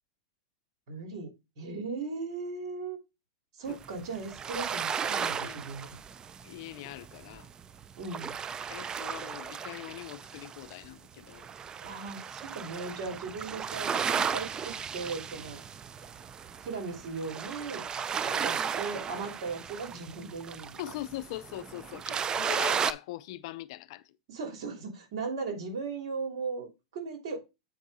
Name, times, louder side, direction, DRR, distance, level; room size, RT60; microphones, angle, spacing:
voice 1, 0.9-3.0 3.5-6.0 8.0-8.4 11.8-15.6 16.6-17.9 18.4-21.0 24.3-27.4, right 4 dB, 70° right, 2.9 m, -38 dB
sound 1, 3.8-10.9 11.3-22.9, right 7 dB, 25° right, 0.5 m, -35 dB
voice 2, 5.2-5.9 6.4-7.5 8.7-11.5 18.2-18.4 20.8-22.0 22.3-24.0, left 15 dB, 65° left, 0.5 m, -42 dB
7.7 x 4.6 x 4.1 m
hypercardioid pair, 120°, 3 cm